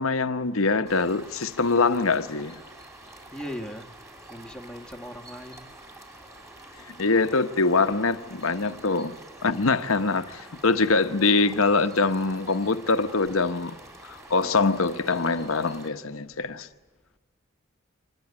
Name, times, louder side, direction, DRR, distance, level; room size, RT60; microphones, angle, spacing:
voice 1, 0.0-2.6 6.9-9.2 9.4-13.8 14.0-16.7, left 3 dB, 75° left, 1.0 m, -24 dB
sound 1, 0.9-15.9, right 1 dB, 15° right, 3.2 m, -47 dB
voice 2, 3.3-3.9 4.3-5.7, equal, 5° left, 1.3 m, -38 dB
25.0 x 20.0 x 9.6 m
head